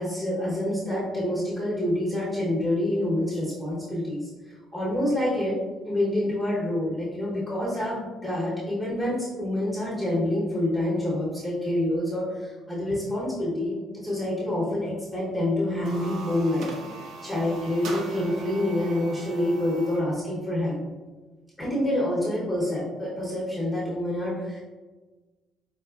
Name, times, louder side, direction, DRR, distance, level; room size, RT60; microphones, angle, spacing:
voice 1, 0.0-5.6 5.8-16.7 16.9-20.8 21.6-24.6, left 1 dB, ahead, -9 dB, 0.9 m, -27 dB
sound 1, 15.7-20.1, right 2 dB, 60° right, 0.5 m, -40 dB
4.8 x 2.1 x 2.4 m, 1.3 s
cardioid pair, 145°, 0 cm